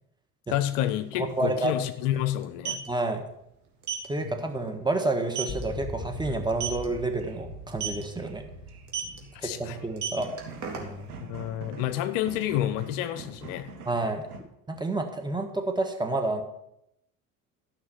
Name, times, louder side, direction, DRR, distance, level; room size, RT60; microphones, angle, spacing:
voice 1, 0.5-2.8 4.2-4.3 9.4-9.8 11.2-13.7, left 12 dB, 55° left, 13 dB, 0.7 m, -29 dB
sound 1, 0.8-0.9 1.2-1.3 2.4-2.9 3.8-4.1 4.5-4.7 5.0-5.1 5.3-5.6 6.5-6.8 7.7-8.0 8.9-9.2 9.8-11.1, right 8 dB, 40° right, 2.4 m, -32 dB
voice 2, 1.2-1.7 2.9-3.2 4.1-8.4 9.4-10.3 10.8-11.1 13.8-14.3 14.7-16.4, right 2 dB, 10° right, 4 dB, 1.5 m, -29 dB
sound 2, 5.5-10.8, left 1 dB, 25° left, 2.1 m, -41 dB
sound 3, 6.6-14.4, right 4 dB, 80° right, 1.4 m, -46 dB
12.5 x 5.8 x 5.7 m, 0.80 s
figure-of-eight pair, 65°, 44 cm